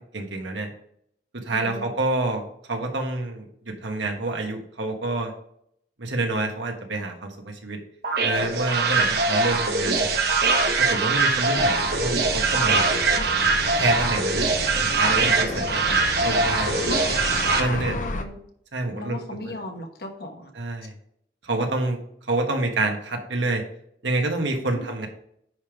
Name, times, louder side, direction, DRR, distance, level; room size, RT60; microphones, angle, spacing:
voice 1, 0.1-0.7 1.4-2.4 2.7-5.3 6.0-7.8 8.2-10.1 10.8-12.9 13.8-14.5 14.9-16.7 17.6-17.9 18.7-19.2 20.6-20.9 21.4-22.0 22.3-23.6 24.0-25.1, right 2 dB, 85° right, 3 dB, 1.4 m, -27 dB
voice 2, 1.5-1.9 13.1-13.5 15.3-15.4 17.9-18.4 18.9-20.5 24.7-25.0, left 1 dB, 60° left, 4 dB, 1.2 m, -37 dB
sound 1, 8.0-17.6, right 3 dB, 60° right, 1.0 m, -22 dB
sound 2, 11.6-18.2, left 2 dB, 45° left, 0.6 m, -32 dB
9.6 x 3.5 x 4.9 m, 0.70 s
head